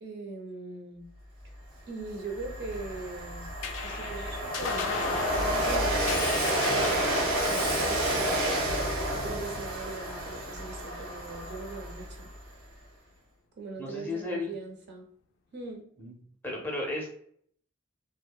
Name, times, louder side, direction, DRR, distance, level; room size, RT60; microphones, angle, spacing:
voice 1, 0.0-1.1 1.9-3.5 3.8-12.3 13.6-15.1 15.5-15.8, right 3 dB, 55° right, 2 dB, 0.6 m, -41 dB
Train, 1.6-1.7 2.0-12.5, right 1 dB, 85° right, 0.8 m, -30 dB
sound 1, 3.6-10.4, left 6 dB, 70° left, 0.3 m, -37 dB
voice 2, 13.8-14.5 16.0-16.1 16.4-17.1, left 2 dB, 10° left, -2 dB, 0.5 m, -33 dB
2.7 x 2.1 x 2.2 m, 0.64 s
head